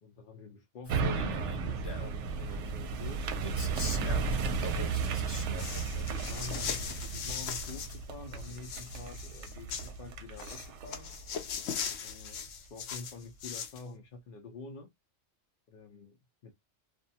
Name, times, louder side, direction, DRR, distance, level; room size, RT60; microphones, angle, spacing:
voice 1, 0.0-3.4 5.9-11.1 12.0-14.9 15.7-16.5, left 4 dB, 55° left, 0.6 m, -48 dB
Male speech man speaking, 0.9-2.2 3.4-5.9, left 2 dB, 25° left, 0.8 m, -41 dB
sound 1, 0.9-12.3 12.8-12.9, right 5 dB, 70° right, 0.8 m, -35 dB
sound 2, 5.6-8.0 8.3-9.9 10.4-13.8, left 7 dB, 75° left, 1.0 m, -39 dB
2.5 x 2.2 x 2.6 m
omnidirectional pair, 1.3 m